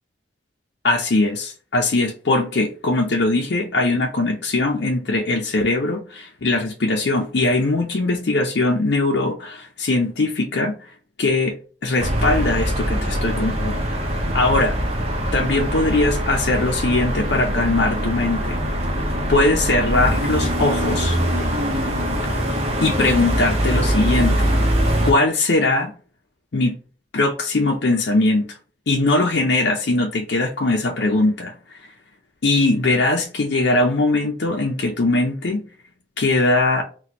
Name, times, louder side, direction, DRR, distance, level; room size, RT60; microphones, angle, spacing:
voice 1, 0.8-10.8 11.2-11.6 11.8-13.8 14.3-14.8 15.3-18.6 19.3-21.2 22.8-24.5 25.0-25.9 26.5-26.8 27.1-28.5 28.9-31.8 32.4-35.6 36.2-36.8, left 2 dB, 70° left, 0.6 m, -20 dB
sound 1, 12.0-25.1, equal, 35° right, 0.8 m, -22 dB
4.1 x 2.3 x 2.8 m
head